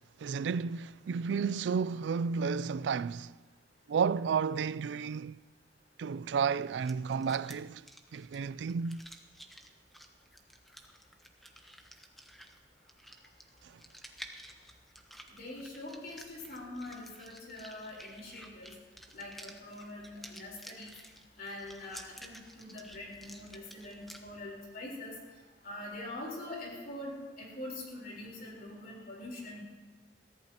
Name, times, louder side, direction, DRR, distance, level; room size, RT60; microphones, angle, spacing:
voice 1, 0.2-3.3 3.9-5.4 6.0-7.8 8.1-9.0, right 6 dB, 90° right, 0.3 m, -32 dB
sound 1, 6.7-24.2, equal, ahead, 0.9 m, -53 dB
voice 2, 15.3-18.7 19.1-20.9 21.4-25.2 25.6-29.6, left 1 dB, 55° left, 3.9 m, -44 dB
22.0 x 15.0 x 2.9 m
head